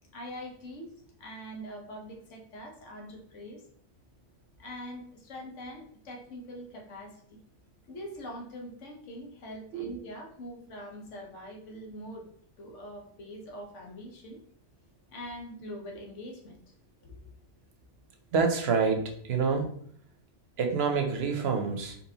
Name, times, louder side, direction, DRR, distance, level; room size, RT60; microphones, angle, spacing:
voice 1, 0.1-3.6 4.6-7.4 7.9-12.3 12.6-14.4 15.1-16.6 17.0-17.2, equal, 80° left, 0 dB, 1.3 m, -43 dB
voice 2, 18.3-19.7 20.6-22.0, right 5 dB, 65° right, 4 dB, 0.8 m, -27 dB
4.2 x 4.0 x 2.8 m, 0.62 s
omnidirectional pair, 1.2 m